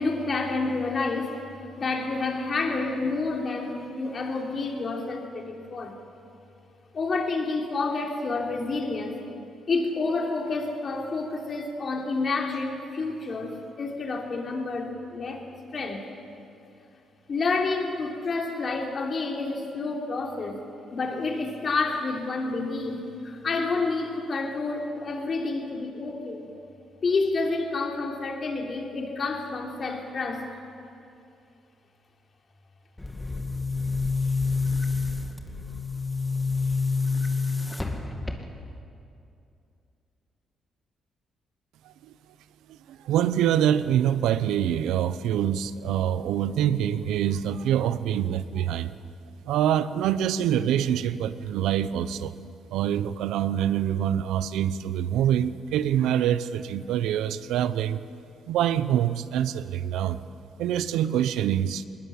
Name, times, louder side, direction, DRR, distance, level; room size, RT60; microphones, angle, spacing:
voice 1, 0.0-5.9 6.9-9.2 9.7-15.4 15.7-16.0 17.3-20.7 20.9-26.5 27.0-30.5, left 3 dB, 45° left, 1 dB, 3.6 m, -29 dB
Boom, 33.0-38.8, left 4 dB, 15° left, 2.2 m, -28 dB
voice 2, 42.9-48.9 49.5-52.3 52.7-58.0 58.5-60.2 60.6-61.9, right 10 dB, 85° right, 14 dB, 0.8 m, -25 dB
21.0 x 20.5 x 8.8 m, 2.6 s
cardioid pair, 90°, 0 cm